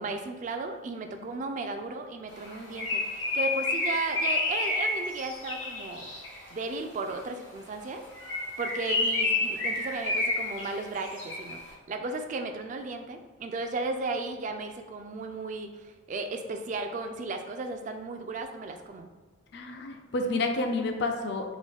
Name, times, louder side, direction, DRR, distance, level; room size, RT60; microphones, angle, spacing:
voice 1, 0.0-6.1 6.5-8.0 8.6-19.1, right 3 dB, 40° right, 6 dB, 0.3 m, -35 dB
Bird, 2.4-6.5 8.1-11.6, left 2 dB, 85° left, 0.9 m, -30 dB
voice 2, 19.5-21.5, left 2 dB, 60° left, 5 dB, 0.4 m, -30 dB
3.7 x 2.2 x 3.4 m, 1.3 s
head